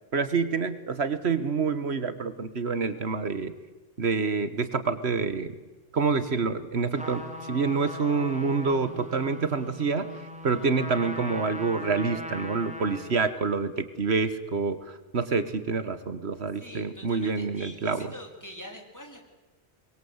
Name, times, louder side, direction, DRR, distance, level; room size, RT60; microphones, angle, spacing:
voice 1, 0.1-3.5 4.0-5.5 5.9-18.1, right 4 dB, 85° right, 11 dB, 1.7 m, -27 dB
Trumpet, 6.9-13.2, left 1 dB, 5° right, 3.0 m, -40 dB
voice 2, 16.6-19.3, equal, 15° left, 2 dB, 3.8 m, -44 dB
23.5 x 22.5 x 8.1 m, 1.1 s
omnidirectional pair, 1.1 m